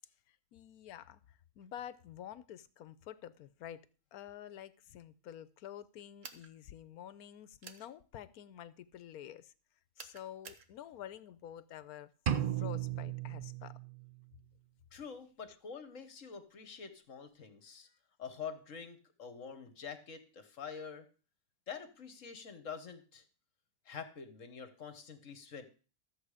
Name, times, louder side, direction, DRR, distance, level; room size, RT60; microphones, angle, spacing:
voice 1, 0.3-3.8 4.1-9.5 10.0-12.1 12.6-13.8, left 10 dB, 80° left, 16 dB, 1.2 m, -49 dB
sound 1, 6.2-6.5 7.6-7.9 10.0-10.7, right 6 dB, 60° right, 1.4 m, -50 dB
sound 2, 12.3-14.2, right 10 dB, 45° right, 0.7 m, -35 dB
voice 2, 14.9-17.9 18.2-21.1 21.7-23.2 23.9-25.7, left 6 dB, 60° left, 10 dB, 1.6 m, -46 dB
13.5 x 7.5 x 4.9 m, 0.37 s
omnidirectional pair, 1.5 m